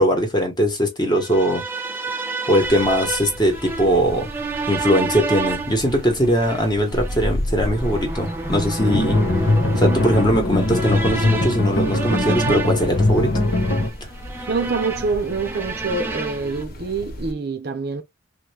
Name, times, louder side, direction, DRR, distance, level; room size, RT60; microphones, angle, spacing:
voice 1, 0.0-1.6 2.1-2.2 2.5-4.3 4.7-9.2 9.8-13.3, equal, 20° left, 1.0 m, -20 dB
sound 1, 1.1-16.6, right 3 dB, 10° right, 0.5 m, -30 dB
sound 2, 2.6-17.3, equal, 45° left, 0.7 m, -34 dB
sound 3, 8.8-13.9, left 1 dB, 65° left, 1.1 m, -21 dB
voice 2, 14.5-18.0, right 4 dB, 50° right, 0.6 m, -25 dB
3.1 x 2.4 x 3.2 m
head